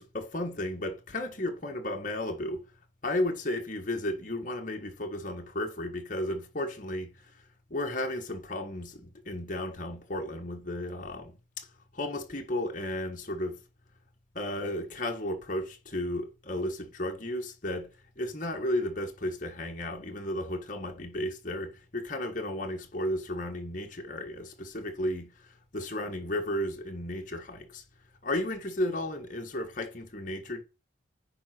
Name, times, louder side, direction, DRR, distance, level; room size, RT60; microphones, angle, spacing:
voice 1, 0.0-2.6 3.0-7.1 7.7-11.6 11.9-13.6 14.3-17.9 18.2-25.3 25.7-27.8 28.2-30.6, left 1 dB, 45° left, 1.6 m, -34 dB
9.9 x 4.0 x 6.0 m
head